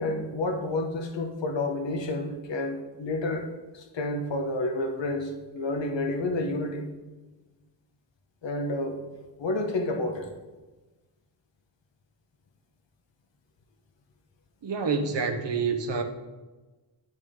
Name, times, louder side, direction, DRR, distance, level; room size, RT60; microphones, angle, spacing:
voice 1, 0.0-3.5 3.7-6.9 8.4-9.0 9.4-10.3, left 2 dB, 70° left, 4 dB, 1.1 m, -30 dB
voice 2, 14.6-16.0, right 5 dB, 65° right, 6 dB, 0.9 m, -27 dB
8.9 x 6.2 x 3.7 m, 1.2 s
wide cardioid pair, 130°, 46 cm